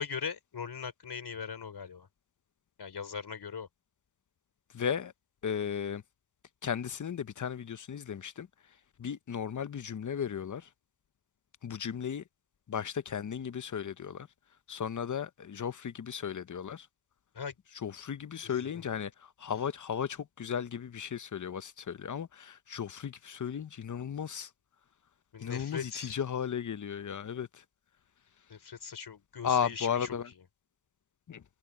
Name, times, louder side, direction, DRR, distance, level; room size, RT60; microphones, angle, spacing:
voice 1, 0.0-2.1 2.8-3.7 17.3-17.6 18.4-18.8 25.3-26.1 28.5-30.2, left 6 dB, 85° left, 4.2 m, -40 dB
voice 2, 4.7-5.1 5.4-6.0 6.6-8.5 9.0-10.7 11.6-12.2 12.7-14.3 14.7-16.9 17.8-24.5 25.4-27.6 29.4-30.3 31.3-31.4, left 8 dB, 50° left, 0.7 m, -35 dB
wide cardioid pair, 100°, 38 cm